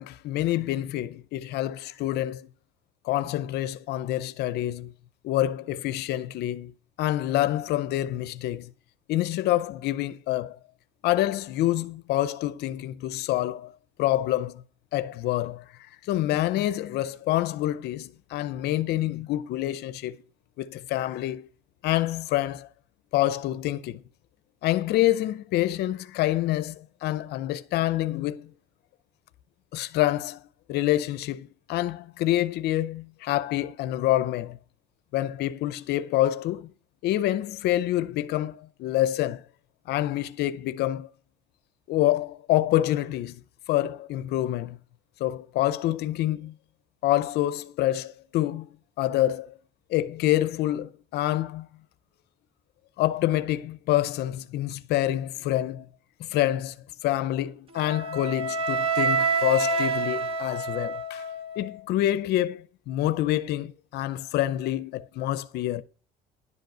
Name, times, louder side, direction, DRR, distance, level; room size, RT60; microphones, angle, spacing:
voice 1, 0.0-2.5 3.0-4.9 5.2-6.7 7.0-8.7 9.1-10.6 11.0-13.7 14.0-14.6 14.9-15.6 16.0-20.2 20.6-21.5 21.8-22.7 23.1-24.0 24.6-28.5 29.7-30.4 30.7-34.6 35.1-36.7 37.0-39.4 39.9-41.1 41.9-43.4 43.7-44.8 45.2-46.5 47.0-49.5 49.9-51.7 53.0-55.9 56.2-56.7 57.0-61.3 61.6-65.8, left 14 dB, 80° left, 0.6 m, -27 dB
Wind instrument woodwind instrument, 57.7-61.8, right 3 dB, 30° right, 1.4 m, -27 dB
11.0 x 5.2 x 7.8 m
cardioid pair, 110°, 17 cm